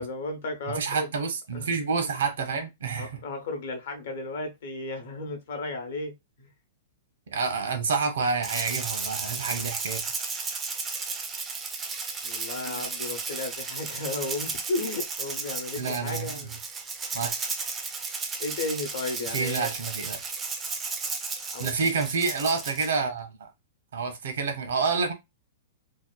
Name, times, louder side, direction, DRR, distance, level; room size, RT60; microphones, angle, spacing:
voice 1, 0.0-1.1 1.5-1.7 3.0-6.1 6.4-6.5 12.2-16.6 18.4-19.7 21.4-21.7, left 2 dB, 60° left, 0.8 m, -34 dB
voice 2, 0.7-3.2 7.3-10.0 12.7-12.8 15.8-16.5 17.1-17.3 19.3-20.3 21.6-23.5 23.9-25.1, right 5 dB, 75° right, 0.7 m, -28 dB
Rattle (instrument), 8.4-23.0, right 4 dB, 10° right, 0.3 m, -34 dB
2.8 x 2.1 x 2.3 m
hypercardioid pair, 165°, 0 cm